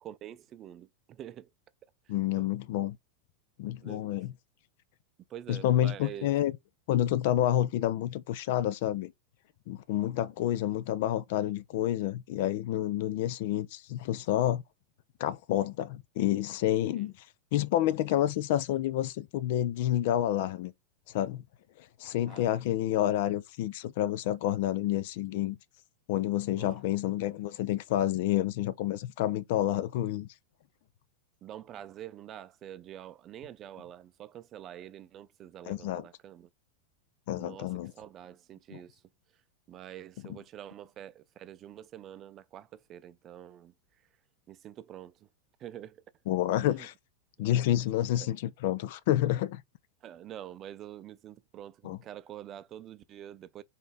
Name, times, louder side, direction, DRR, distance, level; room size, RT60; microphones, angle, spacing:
voice 1, 0.0-1.5 2.3-2.5 3.8-4.1 5.3-6.3 17.0-17.1 22.3-22.5 26.5-26.8 31.4-36.5 37.3-39.0 39.7-43.7 44.5-45.3 45.6-46.0 46.7-46.9 48.0-48.3 50.0-53.6, right 11 dB, 30° right, 0.5 m, -46 dB
voice 2, 2.1-3.0 3.6-4.3 5.5-6.5 6.9-9.1 9.7-14.6 15.2-17.1 17.5-20.7 21.1-21.4 21.8-25.6 26.1-30.3 35.6-36.0 37.3-37.9 38.7-38.8 40.2-40.4 46.3-46.9 47.4-49.6 51.8-52.0, left 12 dB, 50° left, 0.5 m, -29 dB
4.0 x 3.7 x 3.4 m
figure-of-eight pair, 90°, 0 cm